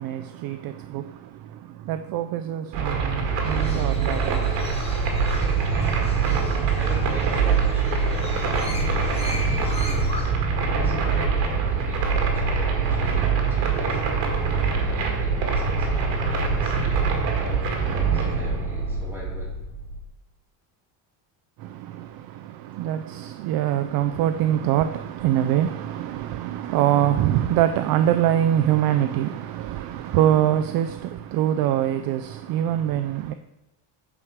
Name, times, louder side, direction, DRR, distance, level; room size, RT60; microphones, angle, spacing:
voice 1, 0.0-4.8 21.6-33.3, right 11 dB, 50° right, 0.4 m, -24 dB
sound 1, 2.7-20.0, right 5 dB, 70° right, 2.0 m, -24 dB
Crow, 3.4-10.2, left 2 dB, 15° left, 1.0 m, -39 dB
voice 2, 6.7-10.4 10.7-14.1 14.5-17.0 17.3-19.6, right 1 dB, 5° right, 2.7 m, -40 dB
9.0 x 4.8 x 6.5 m
cardioid pair, 170°, 47 cm